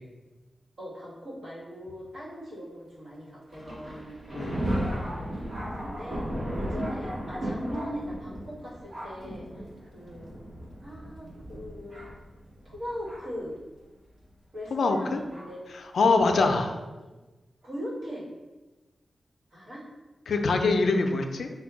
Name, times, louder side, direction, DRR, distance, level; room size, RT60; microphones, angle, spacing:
voice 1, 0.8-4.1 5.1-5.5 5.8-6.3 6.5-10.3 10.8-12.1 12.6-13.6 14.5-15.6 16.3-17.1 17.6-18.3 19.5-19.9, equal, 65° right, -6 dB, 1.4 m, -39 dB
Thunder, 3.5-13.4 14.2-14.3 15.3-15.5 16.2-16.4, equal, 35° right, 1.1 m, -35 dB
voice 2, 4.3-4.7 14.7-15.2 15.9-16.6 20.3-21.5, left 3 dB, 85° left, 5 dB, 0.4 m, -24 dB
4.3 x 2.2 x 4.6 m, 1.2 s
wide cardioid pair, 140°, 0 cm